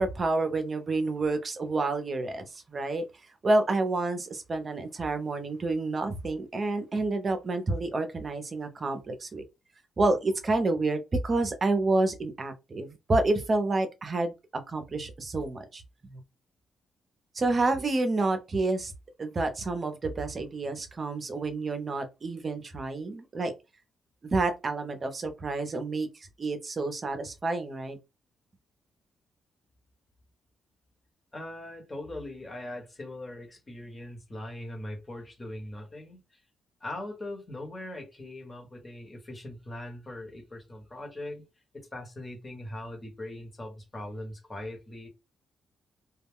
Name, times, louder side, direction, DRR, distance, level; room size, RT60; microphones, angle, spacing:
voice 1, 0.0-3.0 3.4-9.4 10.0-14.3 14.7-16.2 17.3-18.9 19.2-23.5 24.3-28.0, right 2 dB, 35° right, 0.6 m, -29 dB
voice 2, 31.3-36.4 36.8-41.5 41.7-45.1, left 1 dB, 20° left, 1.1 m, -40 dB
2.3 x 2.1 x 3.5 m
cardioid pair, 110°, 0 cm